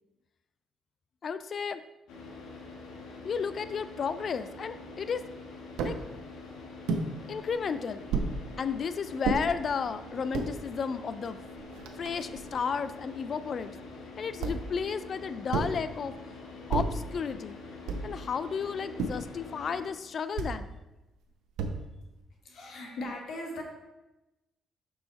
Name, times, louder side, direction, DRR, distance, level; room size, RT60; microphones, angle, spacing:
voice 1, 1.2-1.8 3.2-5.2 5.8-6.0 7.3-8.1 8.6-11.4 12.0-13.7 14.2-16.1 16.7-17.6 18.0-20.8, left 6 dB, 50° left, 13 dB, 0.3 m, -33 dB
Car / Idling, 2.1-19.9, left 2 dB, 85° left, 1.2 m, -45 dB
sound 1, 5.8-6.0 6.9-7.1 8.1-8.4 9.2-9.4 10.1-10.5 11.3-11.4 11.6-12.6 14.4-14.8 15.5-15.8 16.7-17.0 17.9-18.2 19.0-19.3 20.4-20.6 21.6-22.0, right 4 dB, 90° right, 0.6 m, -31 dB
voice 2, 22.4-23.6, left 1 dB, 65° left, 1 dB, 1.4 m, -38 dB
6.0 x 4.8 x 4.0 m, 1.0 s
cardioid pair, 90°, 0 cm